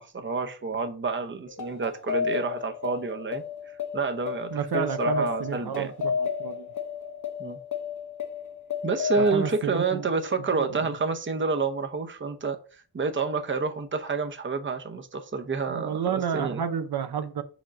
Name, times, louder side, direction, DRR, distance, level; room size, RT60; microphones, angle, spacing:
voice 1, 0.0-3.4 3.9-5.9 7.4-7.6 8.8-16.6, right 4 dB, 30° right, 0.7 m, -29 dB
sound 1, 1.5-10.5, left 6 dB, 50° left, 0.8 m, -33 dB
voice 2, 4.5-6.7 9.2-10.1 10.5-10.7 15.7-17.4, right 7 dB, 80° right, 0.7 m, -30 dB
5.0 x 3.7 x 5.6 m
wide cardioid pair, 115°, 38 cm